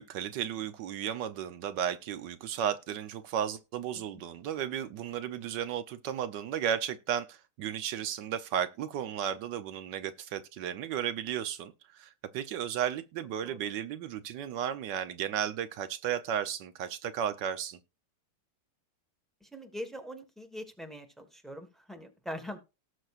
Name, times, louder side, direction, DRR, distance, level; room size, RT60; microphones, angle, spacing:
voice 1, 0.0-17.8, right 9 dB, 80° right, 1.4 m, -34 dB
voice 2, 19.4-22.6, equal, ahead, 1.1 m, -42 dB
18.0 x 6.3 x 2.4 m
omnidirectional pair, 1.9 m